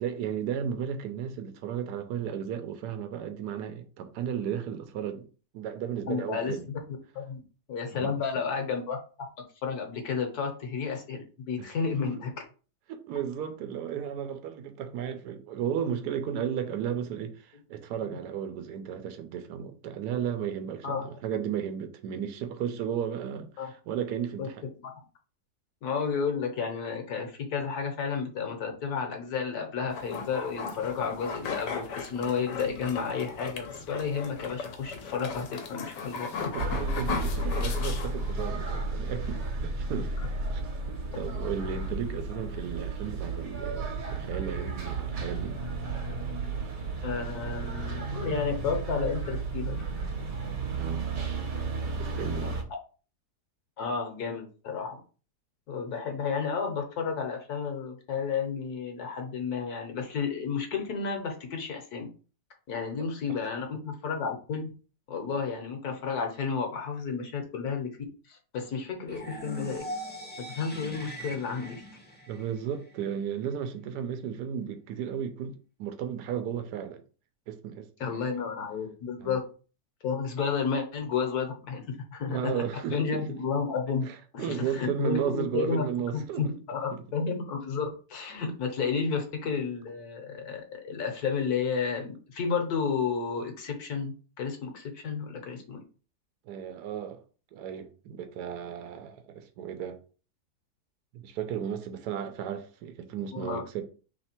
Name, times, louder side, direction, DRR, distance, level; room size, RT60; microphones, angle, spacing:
voice 1, 0.0-5.3 5.5-6.7 7.9-8.1 11.6-11.7 12.0-12.1 12.9-24.6 36.3-40.1 40.5-45.6 50.6-51.0 52.0-52.6 72.3-77.0 77.5-78.2 79.2-79.4 82.3-83.4 84.1-86.5 86.9-87.0 96.4-97.2 97.5-100.0 101.1-103.8, right 8 dB, 75° right, 1.2 m, -34 dB
voice 2, 6.1-6.5 7.1-7.4 7.7-9.0 9.6-12.3 20.8-21.1 23.6-23.7 24.4-24.5 24.8-24.9 25.8-36.5 47.0-49.8 53.8-55.0 55.7-62.1 62.7-64.7 65.1-67.9 68.3-69.8 70.4-71.8 78.0-79.4 80.0-82.6 82.9-84.1 84.3-85.8 86.1-95.8 103.3-103.6, left 5 dB, 70° left, 1.4 m, -32 dB
sound 1, 29.9-38.5, left 5 dB, 85° left, 1.4 m, -37 dB
sound 2, 36.6-52.6, right 3 dB, 60° right, 1.3 m, -33 dB
sound 3, 69.0-73.0, equal, 10° left, 0.5 m, -41 dB
3.3 x 3.2 x 4.3 m
omnidirectional pair, 1.8 m